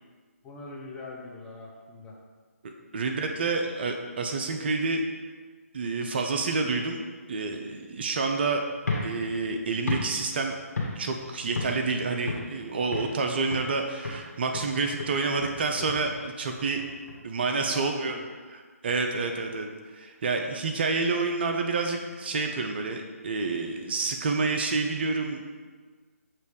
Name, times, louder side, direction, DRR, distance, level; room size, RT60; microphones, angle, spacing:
voice 1, 0.4-2.2 17.7-18.2, left 3 dB, 10° left, -4 dB, 0.7 m, -42 dB
voice 2, 2.6-5.0 5.7-7.0 7.3-8.6 9.0-10.5 11.0-16.8 17.2-18.2 18.5-25.4, right 3 dB, 40° right, 3 dB, 0.5 m, -28 dB
sound 1, 8.8-11.2 11.6-11.9 12.3-13.2 13.5-13.8 14.0-17.2, left 3 dB, 75° left, 1.5 m, -34 dB
6.5 x 3.1 x 5.0 m, 1.5 s
figure-of-eight pair, 145°, 8 cm